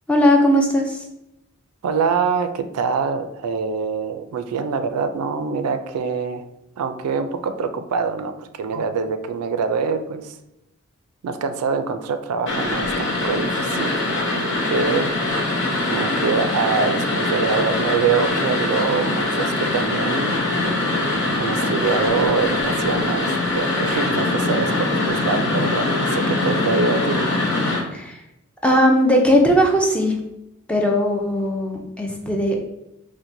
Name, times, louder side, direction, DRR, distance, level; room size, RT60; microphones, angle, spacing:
voice 1, 0.1-1.0 27.9-28.2 28.6-30.2 30.7-32.6, equal, 5° left, 1 dB, 0.3 m, -18 dB
voice 2, 1.8-6.4 6.8-10.3 11.2-14.1 14.4-15.1 15.8-20.4 21.4-27.2, right 5 dB, 85° right, 9 dB, 0.3 m, -24 dB
sound 1, 12.5-27.8, left 2 dB, 55° left, 0.8 m, -22 dB
4.4 x 2.1 x 2.6 m, 0.86 s
head